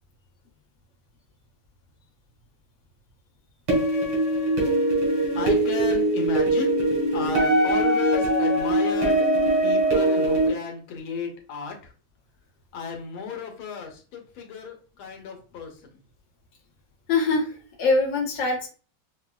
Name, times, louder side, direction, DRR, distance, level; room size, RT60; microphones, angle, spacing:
sound 1, 3.7-10.5, right 1 dB, 85° right, 2.2 m, -22 dB
voice 1, 5.4-6.8 7.1-9.2 9.6-11.7 12.7-15.7, left 5 dB, 85° left, 2 dB, 1.6 m, -33 dB
voice 2, 17.1-18.7, left 3 dB, 50° left, -2 dB, 1.2 m, -23 dB
5.7 x 2.1 x 2.3 m, 0.39 s
omnidirectional pair, 2.2 m